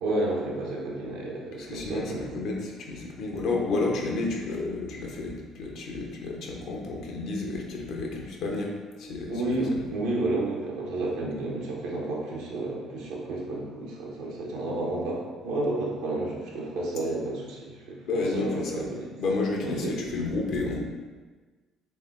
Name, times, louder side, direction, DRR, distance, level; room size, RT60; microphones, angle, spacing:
voice 1, 0.0-2.2 9.3-19.1 19.6-19.9, right 2 dB, 70° right, -3 dB, 0.9 m, -31 dB
voice 2, 1.6-8.7 9.0-9.3 9.7-9.8 18.0-18.8 19.2-20.8, left 3 dB, 60° left, 0 dB, 0.7 m, -31 dB
3.5 x 3.2 x 3.6 m, 1.4 s
figure-of-eight pair, 50°, 0 cm